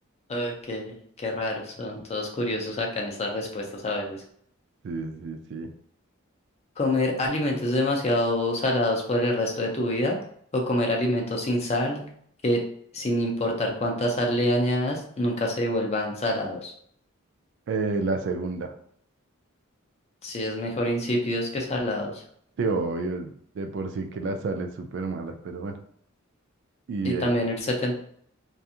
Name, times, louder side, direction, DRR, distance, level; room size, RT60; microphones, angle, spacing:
voice 1, 0.3-0.8 1.2-4.2 6.8-10.2 10.5-12.1 12.4-12.6 12.9-16.7 20.2-22.2 27.0-28.0, left 1 dB, 30° left, 0 dB, 0.5 m, -26 dB
voice 2, 4.8-5.7 17.7-18.7 22.6-25.8 26.9-27.3, right 3 dB, 60° right, 6 dB, 0.3 m, -30 dB
2.5 x 2.3 x 2.7 m, 0.65 s
head